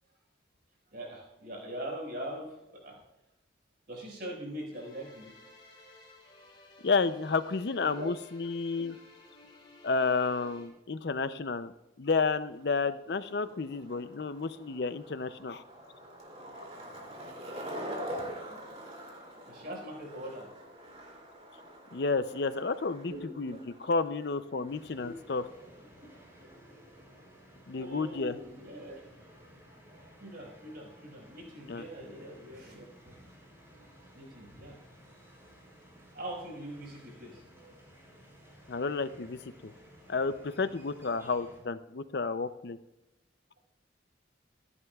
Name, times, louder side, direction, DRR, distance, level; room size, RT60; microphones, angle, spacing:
voice 1, 0.9-3.0 3.9-5.3 7.9-8.1 19.5-20.5 23.1-23.6 24.5-24.6 25.0-25.1 27.8-29.1 30.2-33.1 34.1-34.8 36.1-37.4, equal, 55° right, -1 dB, 5.2 m, -42 dB
sound 1, 4.7-10.7, left 2 dB, 25° left, 4.0 m, -56 dB
voice 2, 6.8-8.9 9.8-11.7 12.0-15.6 21.9-23.6 23.8-25.4 27.7-28.4 31.7-31.8 38.7-39.7 40.1-42.8, left 4 dB, 60° left, 12 dB, 0.5 m, -31 dB
Skateboard, 12.1-27.2, equal, 35° right, 2.8 m, -46 dB
sound 2, 24.7-41.6, equal, 15° right, 5.4 m, -56 dB
25.0 x 11.0 x 2.4 m, 0.95 s
head